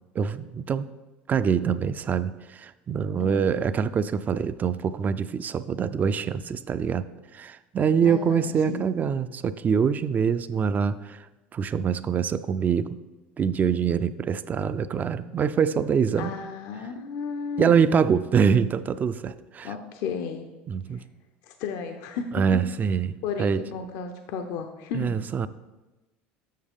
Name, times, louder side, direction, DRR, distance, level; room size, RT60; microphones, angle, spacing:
voice 1, 0.1-0.9 1.3-11.3 11.5-13.0 13.4-16.3 17.6-19.7 20.7-21.0 22.3-23.1 23.4-23.6 24.9-25.5, right 7 dB, 30° right, 14 dB, 0.4 m, -24 dB
voice 2, 8.0-8.9 16.2-17.8 19.6-20.5 20.9-21.0 21.4-22.3 23.2-25.2, left 5 dB, 65° left, 6 dB, 0.6 m, -33 dB
7.4 x 6.2 x 3.6 m, 1.1 s
supercardioid pair, 90°, 5 cm